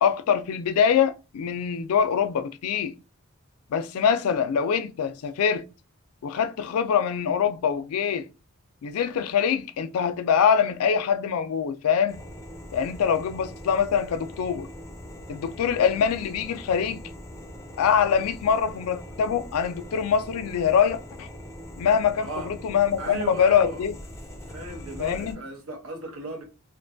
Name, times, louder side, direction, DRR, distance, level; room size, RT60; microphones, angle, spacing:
voice 1, 0.0-3.0 3.7-5.6 6.2-8.3 8.8-12.2 12.7-14.7 15.3-17.1 17.8-21.3 21.8-23.9 25.0-25.4, left 7 dB, 80° left, 0.3 m, -24 dB
sound 1, 12.1-25.3, equal, 15° left, 0.4 m, -42 dB
voice 2, 23.0-23.8 24.4-26.4, right 2 dB, 75° right, 0.8 m, -36 dB
2.4 x 2.2 x 2.5 m
head